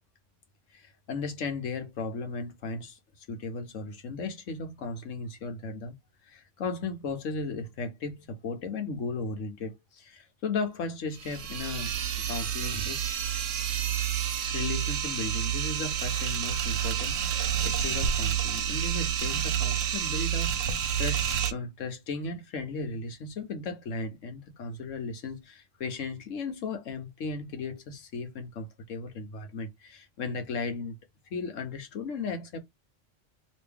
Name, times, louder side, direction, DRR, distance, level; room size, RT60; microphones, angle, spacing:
voice 1, 0.7-6.0 6.3-11.9 12.3-13.0 14.5-31.0 31.3-32.6, left 4 dB, 85° left, 1.3 m, -36 dB
sound 1, 11.1-21.5, right 9 dB, 80° right, 1.1 m, -29 dB
3.1 x 2.6 x 3.4 m
omnidirectional pair, 1.3 m